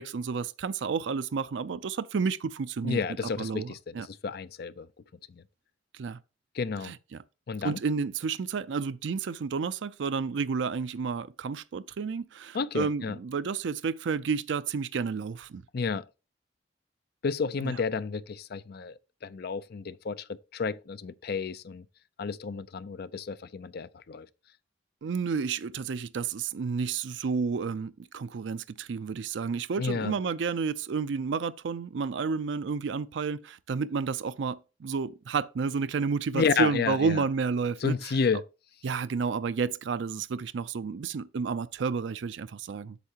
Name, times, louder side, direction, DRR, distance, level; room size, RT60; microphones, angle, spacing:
voice 1, 0.0-3.0 3.4-4.1 5.9-6.2 6.8-7.2 7.6-15.6 17.6-17.8 25.0-38.1 38.8-43.0, right 5 dB, 70° right, 0.4 m, -31 dB
voice 2, 2.8-4.9 5.3-5.4 6.5-6.9 7.5-7.8 12.5-13.2 15.7-16.0 17.2-21.8 22.2-24.3 29.8-30.1 36.3-37.2 37.8-38.4, left 5 dB, 55° left, 0.5 m, -31 dB
8.1 x 6.4 x 2.8 m
head